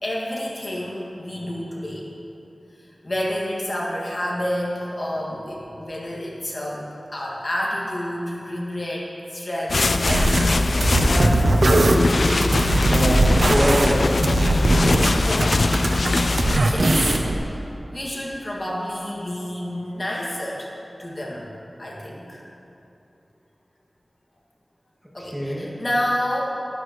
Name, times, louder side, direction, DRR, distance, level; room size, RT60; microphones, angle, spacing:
voice 1, 0.0-2.1 2.8-10.6 11.1-11.5 15.2-15.6 16.1-17.6 17.9-20.7 21.0-21.5 21.8-22.4 25.1-26.4, left 1 dB, 45° left, -4 dB, 2.1 m, -29 dB
sound 1, 9.7-16.6, left 2 dB, 70° left, 0.4 m, -21 dB
sound 2, 10.1-10.5 10.8-15.1 15.4-17.4, right 2 dB, 65° right, 0.8 m, -20 dB
voice 2, 12.6-14.1 14.4-15.3 25.2-25.7, equal, 5° right, -5 dB, 1.9 m, -25 dB
13.0 x 13.0 x 3.2 m, 2.9 s
wide cardioid pair, 80°, 0 cm